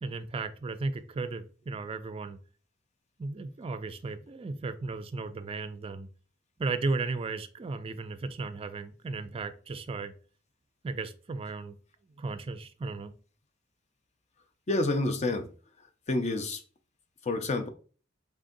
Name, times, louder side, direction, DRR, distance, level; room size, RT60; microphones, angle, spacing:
voice 1, 0.0-2.4 3.2-6.1 6.6-10.1 10.8-11.8 12.2-13.1, right 3 dB, 30° right, 0.4 m, -35 dB
voice 2, 14.7-15.5 16.1-16.6 17.2-17.7, left 2 dB, 35° left, 0.5 m, -28 dB
3.8 x 3.4 x 2.6 m
head